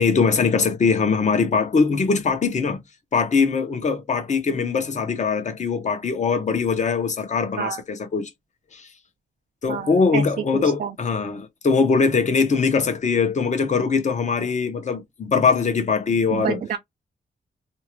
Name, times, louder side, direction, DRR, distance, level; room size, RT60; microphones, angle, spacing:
voice 1, 0.0-2.8 3.1-8.3 8.7-8.9 9.6-16.6, left 5 dB, 45° left, 0.9 m, -21 dB
voice 2, 9.7-10.2 10.5-10.9 16.3-16.8, right 8 dB, 55° right, 0.5 m, -28 dB
2.7 x 2.4 x 3.0 m
wide cardioid pair, 130°, 17 cm